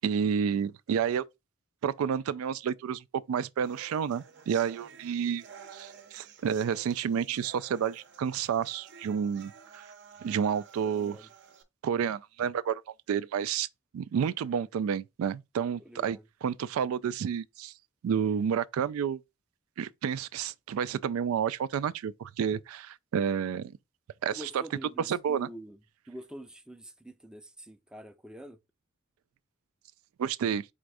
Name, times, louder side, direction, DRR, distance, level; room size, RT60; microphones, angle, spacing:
voice 1, 0.0-1.2 1.8-5.4 5.7-9.9 10.2-11.2 11.8-12.8 13.1-13.7 13.9-17.7 18.0-19.2 19.8-23.7 24.2-24.5 25.1-25.5 30.2-30.7, right 7 dB, 85° right, 0.3 m, -30 dB
sound 1, 3.6-11.6, right 6 dB, 55° right, 0.7 m, -52 dB
voice 2, 10.8-11.3 15.8-16.3 24.3-25.8 26.1-28.6, right 1 dB, 5° right, 0.4 m, -46 dB
4.3 x 2.5 x 4.6 m
head